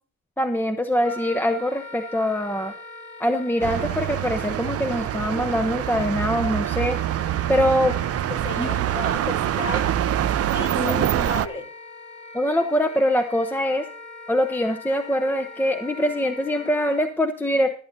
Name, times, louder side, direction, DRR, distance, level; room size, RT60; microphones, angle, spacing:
voice 1, 0.4-2.7 3.2-7.0 7.5-8.0 8.6-8.8 10.7-11.3 12.3-13.8 14.3-17.7, equal, 5° left, 8 dB, 0.8 m, -23 dB
Wind instrument woodwind instrument, 1.0-17.1, left 2 dB, 20° left, 2.5 m, -42 dB
sound 1, 3.6-11.5, right 12 dB, 55° right, 0.5 m, -25 dB
voice 2, 8.3-9.9 10.5-11.7, left 2 dB, 45° left, 1 dB, 4.5 m, -34 dB
21.0 x 9.0 x 2.7 m, 0.43 s
cardioid pair, 90°, 30 cm